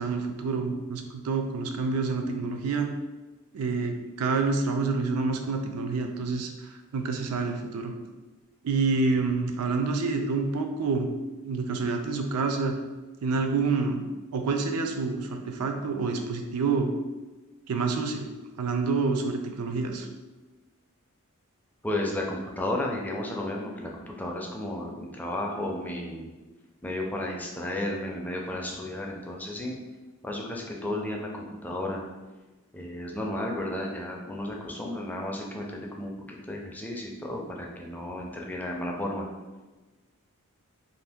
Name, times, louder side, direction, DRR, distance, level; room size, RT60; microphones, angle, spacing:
voice 1, 0.0-2.9 3.5-7.9 8.6-11.1 11.4-12.7 13.2-14.0 14.3-16.9 17.7-18.3 18.6-20.1, right 4 dB, 85° right, 5 dB, 0.4 m, -28 dB
voice 2, 21.8-26.3 26.8-29.8 30.2-32.0 32.7-39.2, left 1 dB, 10° left, -1 dB, 0.4 m, -33 dB
2.6 x 2.5 x 3.4 m, 1.2 s
head